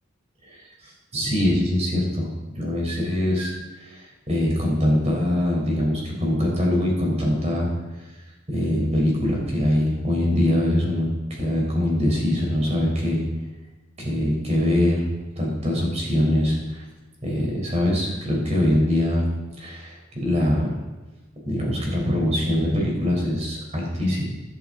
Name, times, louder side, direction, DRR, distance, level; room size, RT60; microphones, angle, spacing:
voice 1, 0.8-7.7 8.5-13.3 14.0-15.1 15.3-16.8 17.2-20.7 21.4-24.2, left 1 dB, 35° right, -2 dB, 4.3 m, -23 dB
15.0 x 11.0 x 3.9 m, 1.2 s
head